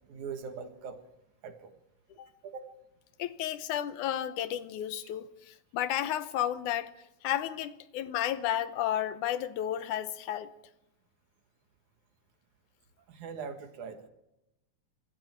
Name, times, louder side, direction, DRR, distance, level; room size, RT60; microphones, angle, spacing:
voice 1, 0.1-1.0 1.4-1.7 2.4-2.6 13.1-14.1, right 6 dB, 75° right, 3.1 m, -41 dB
voice 2, 3.2-6.9 7.2-10.5, left 11 dB, 80° left, 2.4 m, -32 dB
25.5 x 22.5 x 4.5 m
omnidirectional pair, 3.5 m